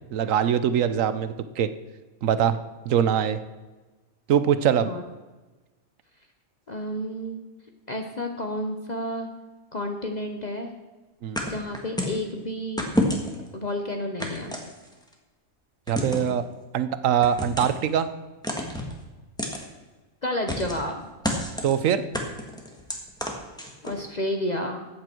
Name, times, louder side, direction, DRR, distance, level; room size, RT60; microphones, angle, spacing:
voice 1, 0.1-1.7 2.2-2.6 2.9-3.4 4.3-4.9 11.2-11.4 15.9-16.4 16.7-18.1 21.6-22.0, right 9 dB, 70° right, 12 dB, 1.0 m, -22 dB
voice 2, 6.7-7.4 7.9-9.3 9.7-10.7 11.5-12.9 13.5-14.6 20.2-21.1 23.8-24.9, left 1 dB, 35° left, 4 dB, 0.9 m, -31 dB
sound 1, 11.4-12.2 12.8-13.5 14.2-15.1 15.9-16.3 17.2-17.8 18.4-18.9 19.4-19.6 20.5-20.9 21.2-21.8 22.1-24.0, left 1 dB, 5° left, 1.5 m, -29 dB
14.0 x 8.6 x 4.5 m, 1.2 s
omnidirectional pair, 1.4 m